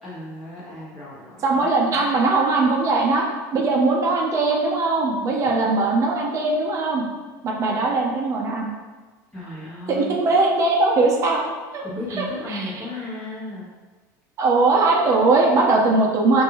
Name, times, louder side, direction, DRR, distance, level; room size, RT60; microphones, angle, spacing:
voice 1, 0.0-2.1 7.1-7.4 9.3-10.1 11.8-13.7, left 1 dB, ahead, -11 dB, 1.4 m, -35 dB
voice 2, 1.4-3.2 3.5-7.0 7.4-8.7 9.9-11.4 11.7-11.8 12.1-12.7 14.4-16.4, right 3 dB, 35° right, -1 dB, 0.6 m, -20 dB
5.1 x 2.6 x 3.0 m, 1.3 s
cardioid pair, 145°, 9 cm